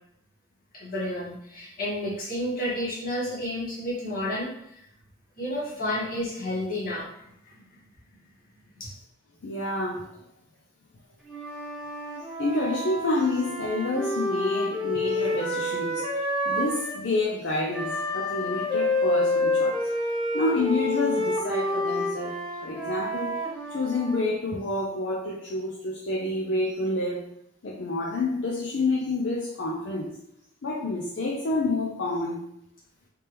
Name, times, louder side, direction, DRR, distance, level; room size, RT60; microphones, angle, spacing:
voice 1, 0.8-4.7 5.4-7.1 8.8-8.9, left 1 dB, 45° left, -6 dB, 1.5 m, -31 dB
voice 2, 9.4-10.1 12.4-19.9 20.3-23.4 23.7-27.3 27.6-30.2 30.6-32.4, left 2 dB, 65° left, -3 dB, 0.5 m, -28 dB
Wind instrument woodwind instrument, 11.3-17.0 17.7-24.2, left 1 dB, 5° right, 0.8 m, -28 dB
3.4 x 3.3 x 3.0 m, 0.76 s
head